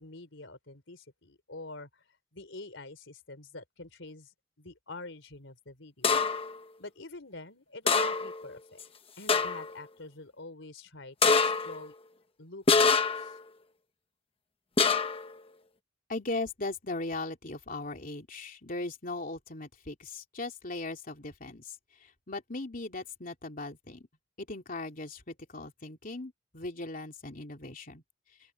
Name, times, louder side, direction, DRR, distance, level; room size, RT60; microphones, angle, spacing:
voice 1, 0.0-2.0 2.3-6.2 6.8-8.8 9.2-11.9 12.4-13.4, left 2 dB, 75° left, 4.1 m, -46 dB
sound 1, 6.0-6.5 7.9-8.4 8.8-8.9 9.3-9.7 11.2-11.8 12.7-13.3 14.8-15.3, left 4 dB, 30° left, 1.1 m, -25 dB
voice 2, 16.1-24.1 24.4-28.0, left 2 dB, 45° left, 3.1 m, -38 dB
open air
head